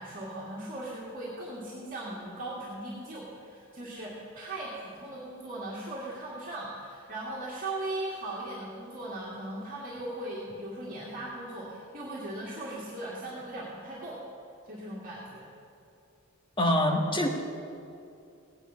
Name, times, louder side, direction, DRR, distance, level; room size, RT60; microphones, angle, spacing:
voice 1, 0.0-14.2 14.6-15.5, right 1 dB, 40° right, -6 dB, 2.0 m, -38 dB
voice 2, 16.6-17.3, left 1 dB, 25° left, 1 dB, 1.3 m, -24 dB
17.0 x 9.9 x 5.6 m, 2.6 s
head